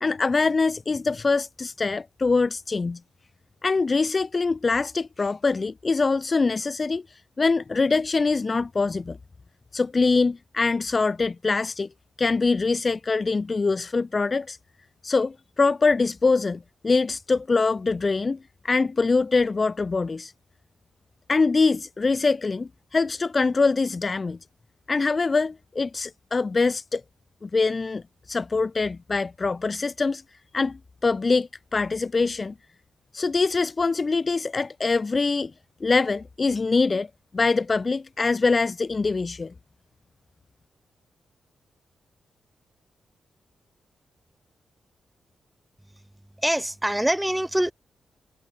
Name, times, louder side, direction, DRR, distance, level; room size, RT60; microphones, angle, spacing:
voice 1, 0.0-3.0 3.6-7.0 7.4-9.2 9.7-11.9 12.2-14.6 15.0-18.4 18.6-20.3 21.3-24.4 24.9-27.0 27.4-28.0 28.3-30.2 30.5-32.5 33.1-35.5 35.8-37.1 37.3-39.5, left 4 dB, 40° left, 2.0 m, -23 dB
voice 2, 46.4-47.7, right 1 dB, 10° right, 6.8 m, -24 dB
cardioid pair, 60°, 0 cm